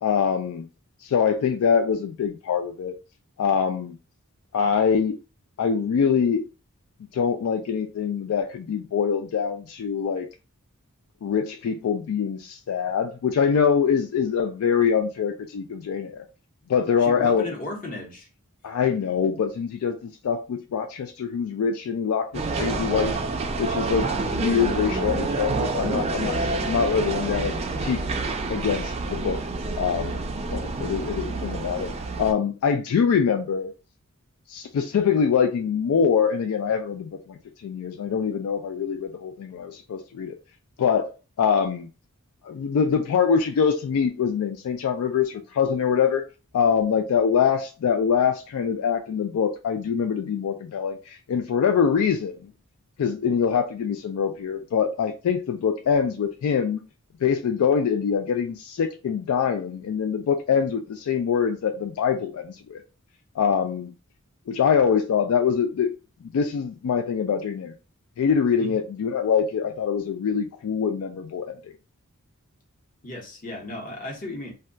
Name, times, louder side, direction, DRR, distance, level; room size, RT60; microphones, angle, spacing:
voice 1, 0.0-0.7 1.0-2.9 3.4-4.0 4.5-5.2 5.6-6.4 7.1-10.3 11.2-16.3 16.7-17.5 18.6-23.2 23.6-28.0 28.5-29.4 29.8-30.2 30.5-31.9 32.2-33.7 34.5-40.4 40.8-41.1 41.4-41.9 42.4-46.2 46.5-52.5 53.0-56.8 57.2-62.8 63.4-63.9 64.5-65.9 66.2-67.7 68.2-71.7, left 6 dB, 70° left, 0.3 m, -24 dB
voice 2, 17.0-18.3 68.6-68.7 73.0-74.5, left 2 dB, 40° left, 0.9 m, -35 dB
sound 1, 22.3-32.3, right 3 dB, 30° right, 0.3 m, -28 dB
2.2 x 2.2 x 3.7 m
head